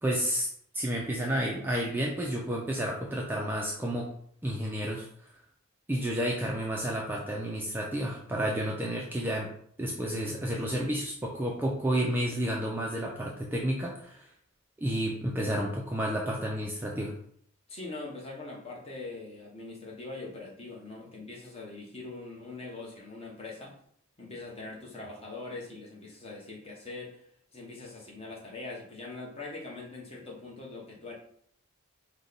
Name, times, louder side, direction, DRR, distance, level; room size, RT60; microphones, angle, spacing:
voice 1, 0.0-0.5 0.7-4.1 4.4-5.1 5.9-9.5 9.8-14.3 14.8-17.1, equal, 10° right, -2 dB, 0.4 m, -31 dB
voice 2, 17.7-23.8 24.2-27.2 27.5-31.1, left 3 dB, 25° left, -3 dB, 1.0 m, -42 dB
4.9 x 2.2 x 3.9 m, 0.64 s
head